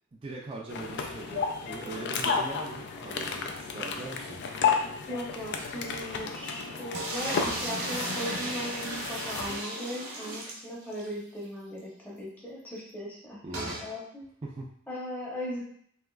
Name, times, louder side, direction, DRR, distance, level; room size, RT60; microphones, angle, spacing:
voice 1, 0.1-4.4 13.4-13.8 14.4-14.7, right 2 dB, 25° right, -3 dB, 0.4 m, -41 dB
sound 1, 0.7-9.6, left 5 dB, 55° left, 0.3 m, -32 dB
voice 2, 5.1-14.3 14.9-15.6, equal, 10° left, -6 dB, 0.8 m, -38 dB
sound 2, 6.9-11.1 11.5-11.6 11.8-11.9 13.5-13.9, right 1 dB, 80° right, 0.9 m, -35 dB
3.3 x 2.9 x 2.3 m, 0.65 s
head